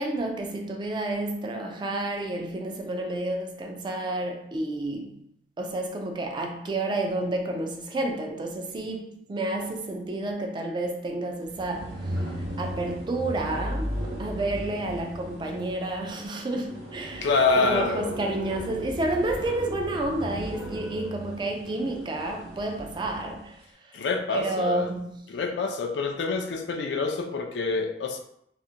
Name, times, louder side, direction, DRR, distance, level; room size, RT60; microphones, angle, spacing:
voice 1, 0.0-5.2 5.6-12.3 12.6-23.6 23.9-24.0 24.3-25.2, right 2 dB, 25° right, 0.3 m, -30 dB
Metal Drag One, 11.4-23.5, equal, 80° right, 0.7 m, -36 dB
voice 2, 17.2-18.1 23.9-24.9 25.3-28.2, left 4 dB, 75° left, 0.4 m, -26 dB
2.4 x 2.1 x 2.7 m
head